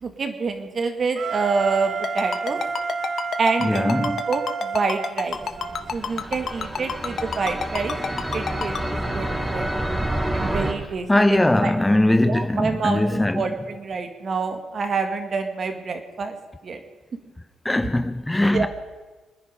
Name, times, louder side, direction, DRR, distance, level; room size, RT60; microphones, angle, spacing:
voice 1, 0.0-2.6 3.4-5.4 5.9-7.9 8.3-9.7 10.3-11.7 12.2-16.4 16.6-16.8 18.5-18.7, right 4 dB, 45° right, 2.1 m, -27 dB
Wind instrument woodwind instrument, 1.1-5.9, right 5 dB, 65° right, 1.3 m, -30 dB
Ringtone, 2.0-8.8, left 7 dB, 55° left, 1.1 m, -28 dB
voice 2, 3.6-4.2 11.1-13.5 17.6-18.7, left 1 dB, 10° left, 0.5 m, -20 dB
sound 1, 5.3-10.7, right 1 dB, 10° right, 2.0 m, -28 dB
26.0 x 10.0 x 5.3 m
cardioid pair, 90°, 0 cm